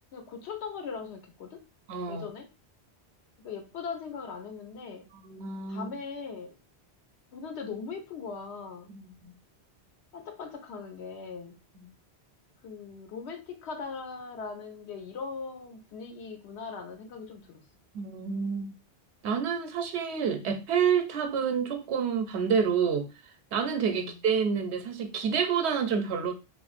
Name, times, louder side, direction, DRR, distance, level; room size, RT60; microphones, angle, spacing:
voice 1, 0.1-1.7 2.1-2.5 3.4-5.1 5.7-6.6 7.3-8.9 10.1-11.6 12.6-17.6 23.9-24.2, left 5 dB, 85° left, 5 dB, 0.9 m, -40 dB
voice 2, 1.9-2.3 5.1-5.9 8.9-9.3 11.8-11.9 17.9-18.7 19.2-23.1 23.5-26.3, right 6 dB, 90° right, 6 dB, 0.9 m, -28 dB
3.0 x 2.4 x 2.4 m, 0.28 s
omnidirectional pair, 1.1 m